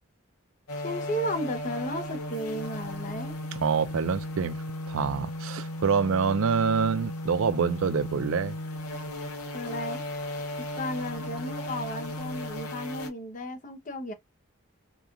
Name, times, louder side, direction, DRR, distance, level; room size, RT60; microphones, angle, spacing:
sound 1, 0.7-13.1, left 1 dB, 85° left, 0.8 m, -36 dB
voice 1, 0.8-3.3 9.5-10.0 10.8-14.1, equal, 35° left, 0.6 m, -34 dB
voice 2, 3.5-4.6 4.9-8.6, right 6 dB, 65° right, 0.4 m, -26 dB
2.9 x 2.3 x 2.4 m
head